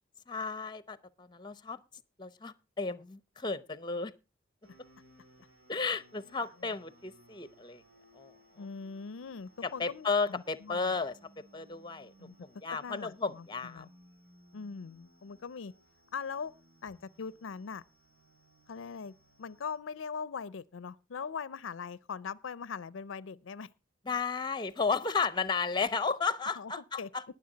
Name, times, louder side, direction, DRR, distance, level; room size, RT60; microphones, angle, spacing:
voice 1, 0.3-1.8 2.2-4.1 5.7-7.8 8.1-8.3 9.6-11.1 11.5-13.9 24.1-27.2, left 4 dB, 25° left, 0.7 m, -33 dB
sound 1, 4.6-19.8, equal, 80° right, 2.9 m, -63 dB
voice 2, 8.6-10.9 12.2-12.4 12.7-13.9 14.5-15.7 16.1-16.5 16.8-17.8 18.7-23.7 26.6-26.7 27.0-27.1, left 5 dB, 80° left, 0.5 m, -41 dB
20.0 x 7.0 x 3.9 m
head